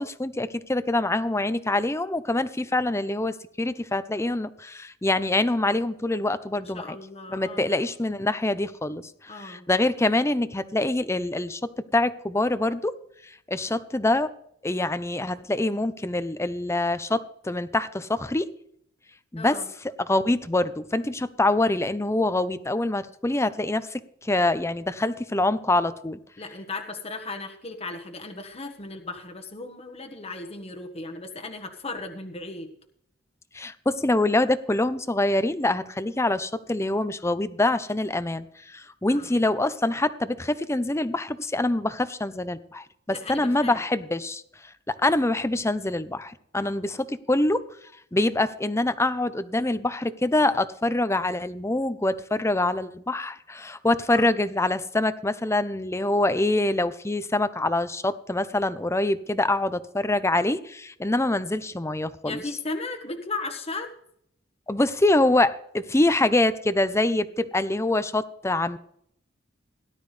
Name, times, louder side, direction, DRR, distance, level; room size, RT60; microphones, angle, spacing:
voice 1, 0.0-6.8 7.3-12.9 13.2-14.3 14.6-18.5 19.3-19.6 20.0-26.2 33.5-44.4 44.9-47.6 48.1-62.4 64.7-68.8, left 2 dB, 15° left, 13 dB, 0.7 m, -25 dB
voice 2, 6.5-7.7 9.3-9.7 19.4-19.7 26.4-32.7 39.1-39.3 43.1-43.8 46.6-46.7 54.1-54.3 62.2-63.9, left 3 dB, 30° left, 4 dB, 1.3 m, -36 dB
17.5 x 11.5 x 3.3 m, 0.68 s
head